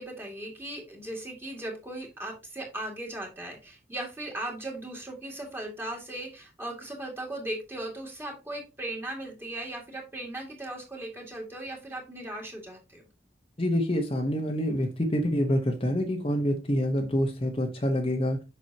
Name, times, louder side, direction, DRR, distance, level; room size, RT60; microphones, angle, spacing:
voice 1, 0.0-13.0, right 1 dB, 15° right, 2.0 m, -38 dB
voice 2, 13.6-18.4, equal, 30° left, 1.0 m, -27 dB
7.5 x 6.0 x 2.8 m
head